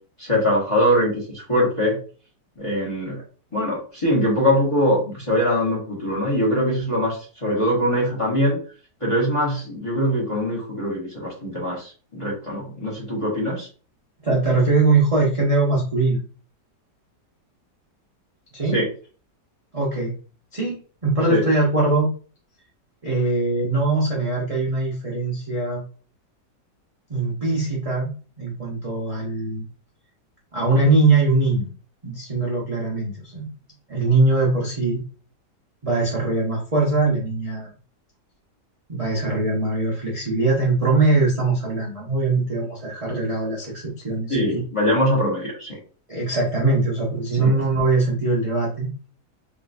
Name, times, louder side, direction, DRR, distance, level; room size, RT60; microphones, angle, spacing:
voice 1, 0.2-2.0 2.6-3.2 3.5-8.6 9.0-13.7 18.7-18.9 21.3-21.4 44.3-45.8 47.4-47.5, equal, 20° left, -5 dB, 1.5 m, -22 dB
voice 2, 14.2-16.2 18.5-18.7 19.7-20.1 20.5-20.8 21.0-22.1 23.0-25.8 27.1-28.1 28.4-29.6 30.5-31.7 32.0-33.5 33.9-35.0 35.8-37.7 38.9-44.6 46.1-48.9, right 3 dB, 30° right, -5 dB, 0.8 m, -21 dB
3.7 x 3.1 x 2.6 m, 0.39 s
omnidirectional pair, 1.9 m